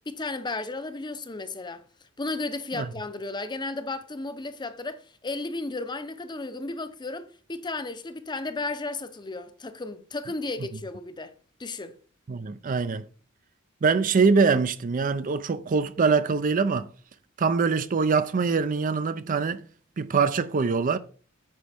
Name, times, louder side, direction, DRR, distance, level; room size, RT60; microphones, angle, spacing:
voice 1, 0.1-1.8 2.2-11.3 11.6-11.9, left 3 dB, 20° left, 0.7 m, -34 dB
voice 2, 12.3-13.0 13.8-16.9 17.4-19.6 20.0-21.0, right 5 dB, 40° right, 0.4 m, -23 dB
8.9 x 6.2 x 3.4 m
head